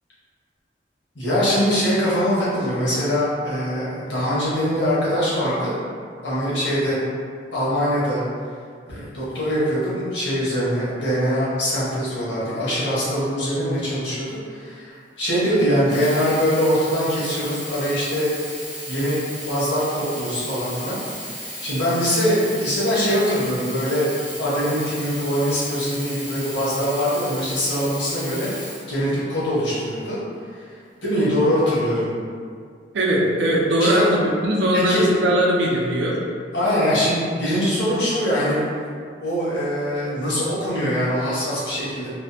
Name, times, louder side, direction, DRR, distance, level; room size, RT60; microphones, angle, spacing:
voice 1, 1.1-5.7 6.2-7.0 7.5-8.2 8.9-18.3 18.9-21.0 21.6-24.1 24.4-28.5 28.9-30.2 31.0-32.1 33.8-34.2 34.7-35.1 36.5-38.6 39.2-42.1, equal, 85° left, -9 dB, 1.0 m, -22 dB
Sink (filling or washing), 15.8-29.5 30.3-30.4, equal, 5° left, 1.0 m, -35 dB
voice 2, 32.9-36.2, equal, 85° right, -2 dB, 0.5 m, -20 dB
2.6 x 2.1 x 2.6 m, 2.1 s
head